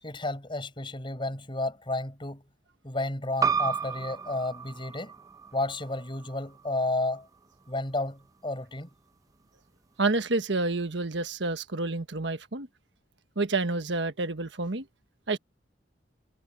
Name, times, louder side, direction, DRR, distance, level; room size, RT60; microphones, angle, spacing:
voice 1, 0.0-2.4 2.8-5.1 5.5-7.3 7.7-8.9, left 2 dB, 30° left, 6.4 m, -32 dB
sound 1, 3.4-8.6, right 6 dB, 20° right, 0.9 m, -33 dB
voice 2, 10.0-12.7 13.4-14.8 15.3-15.4, right 3 dB, 80° right, 1.3 m, -29 dB
head